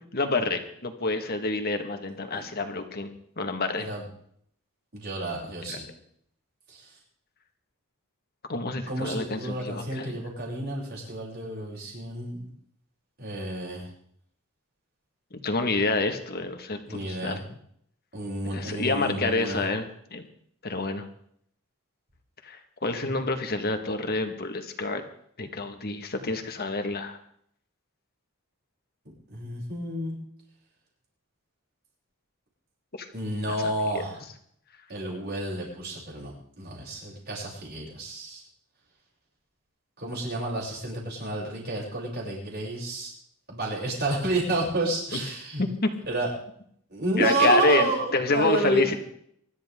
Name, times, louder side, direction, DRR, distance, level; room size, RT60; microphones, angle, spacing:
voice 1, 0.1-3.1 3.4-3.9 5.7-5.8 8.5-10.2 15.4-17.3 18.5-20.3 20.6-21.1 22.4-25.0 25.4-27.2 33.0-33.1 33.9-34.0 45.1-45.2 45.6-45.9 47.2-49.0, left 3 dB, 45° left, 6 dB, 1.8 m, -27 dB
voice 2, 4.9-5.9 6.7-6.9 8.9-12.4 13.2-13.9 16.9-17.5 18.1-19.7 29.3-30.2 33.1-34.2 34.9-38.4 40.0-43.1 43.5-45.6 46.1-46.3 46.9-49.0, right 2 dB, 45° right, -3 dB, 7.7 m, -30 dB
24.5 x 13.0 x 3.8 m, 0.67 s
head